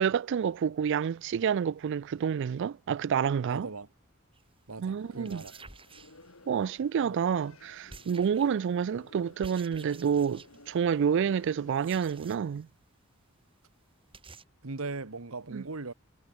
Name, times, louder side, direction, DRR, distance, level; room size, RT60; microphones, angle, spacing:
voice 1, 0.0-3.7 4.8-5.4 6.5-12.7 15.5-15.6, right 7 dB, 60° right, 0.3 m, -28 dB
voice 2, 3.5-3.9 4.7-5.7 7.1-7.2 14.6-15.9, right 3 dB, 85° right, 1.5 m, -39 dB
sound 1, 4.3-4.5 5.1-6.7 7.9-8.7 9.4-10.7 11.7-12.6 12.9-13.0 13.4-13.5 13.7-13.8 14.1-14.4, right 4 dB, 25° right, 4.0 m, -51 dB
sound 2, 5.0-12.2, left 2 dB, 80° left, 5.0 m, -55 dB
head